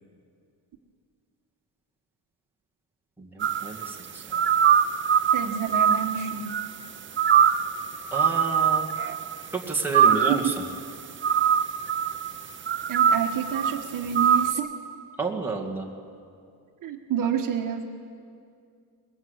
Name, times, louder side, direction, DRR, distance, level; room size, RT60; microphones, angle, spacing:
voice 1, 3.2-4.4 8.1-8.9 9.5-10.5 15.2-15.9, right 3 dB, 5° right, -1 dB, 1.9 m, -31 dB
sound 1, 3.4-3.9 4.3-6.8 7.2-7.7 8.1-9.4 9.9-10.6 11.2-12.4 12.7-13.8 14.2-14.5, right 8 dB, 30° right, 0.7 m, -22 dB
voice 2, 5.3-6.5 10.1-10.6 12.9-14.7 16.8-17.8, right 8 dB, 50° right, 3 dB, 1.5 m, -29 dB
22.5 x 21.0 x 8.1 m, 2.4 s
cardioid pair, 180°, 41 cm